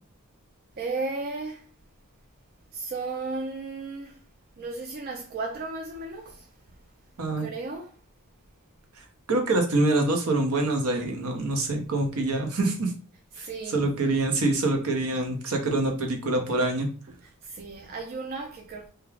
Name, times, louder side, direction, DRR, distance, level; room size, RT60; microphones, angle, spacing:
voice 1, 0.8-1.7 2.7-4.2 4.6-6.5 7.4-8.0 13.3-13.9 17.2-18.9, right 3 dB, 40° right, 0.3 m, -35 dB
voice 2, 9.3-12.9 13.4-13.5 13.7-16.9, right 2 dB, 70° right, 0.7 m, -25 dB
2.3 x 2.2 x 3.1 m
head